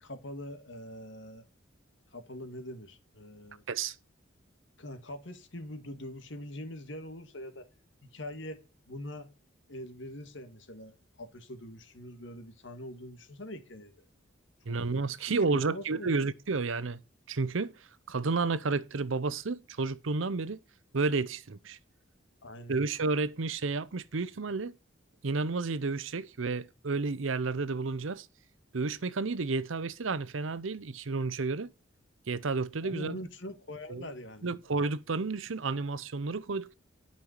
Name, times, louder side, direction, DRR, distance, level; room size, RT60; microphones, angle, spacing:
voice 1, 0.0-1.5 2.1-3.6 4.8-7.7 8.0-9.3 9.7-13.9 14.7-14.8 15.5-16.1 22.4-22.8 32.8-34.5, left 1 dB, 70° left, 1.9 m, -43 dB
voice 2, 14.7-17.0 17.3-17.7 18.1-20.6 20.9-21.8 22.7-24.7 25.2-28.3 28.7-31.7 32.3-33.2 33.9-34.1 34.4-36.7, right 3 dB, 85° right, 0.7 m, -31 dB
11.0 x 5.6 x 6.5 m
head